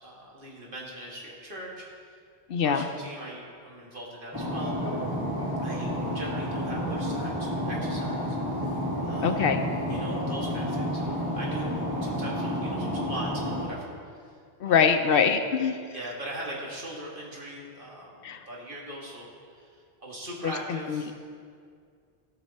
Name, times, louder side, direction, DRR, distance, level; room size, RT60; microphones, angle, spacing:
voice 1, 0.0-2.2 2.6-4.8 5.6-9.4 9.9-11.7 12.0-14.3 14.6-14.8 15.9-21.1, right 1 dB, 55° right, -3 dB, 2.1 m, -41 dB
voice 2, 2.5-2.8 9.2-9.6 14.6-15.8 18.2-18.4 20.4-21.0, left 6 dB, 70° left, 7 dB, 0.8 m, -24 dB
sound 1, 4.3-13.7, equal, 20° right, 2.3 m, -30 dB
16.5 x 6.0 x 4.2 m, 2.2 s
omnidirectional pair, 1.0 m